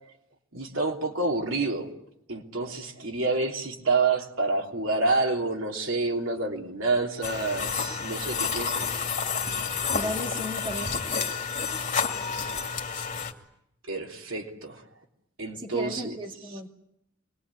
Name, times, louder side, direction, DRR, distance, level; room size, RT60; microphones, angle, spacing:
voice 1, 0.5-1.9 2.3-8.9 13.9-14.8 15.4-16.2, right 3 dB, 75° right, 2 dB, 3.3 m, -28 dB
sound 1, 7.2-13.3, left 5 dB, 40° left, 2.5 m, -30 dB
voice 2, 9.9-11.0 15.6-16.7, equal, 25° right, 3 dB, 2.1 m, -35 dB
27.0 x 21.5 x 9.8 m, 0.80 s
head